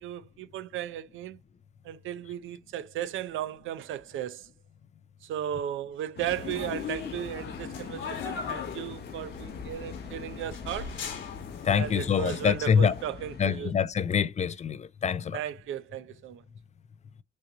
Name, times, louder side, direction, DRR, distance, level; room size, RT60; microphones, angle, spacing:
voice 1, 0.0-1.4 1.8-4.5 5.2-11.0 11.7-13.7 15.3-16.4, right 11 dB, 80° right, 0.6 m, -35 dB
sound 1, 6.2-13.6, left 6 dB, 55° left, 0.9 m, -43 dB
sound 2, 6.3-13.1, left 6 dB, 75° left, 1.8 m, -39 dB
voice 2, 11.6-12.9 13.4-15.4, left 7 dB, 35° left, 0.4 m, -25 dB
6.2 x 2.8 x 2.8 m
cardioid pair, 90°, 20 cm